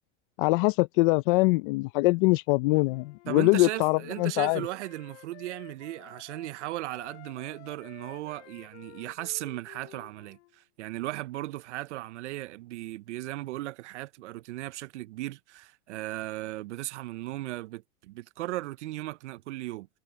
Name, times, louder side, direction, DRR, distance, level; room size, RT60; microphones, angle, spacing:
voice 1, 0.4-4.6, left 24 dB, 45° left, 0.6 m, -23 dB
Wind instrument woodwind instrument, 2.9-6.5 6.9-10.5, left 17 dB, 65° left, 2.3 m, -51 dB
voice 2, 3.3-19.9, right 17 dB, 75° right, 0.7 m, -37 dB
supercardioid pair, 140°, 36 cm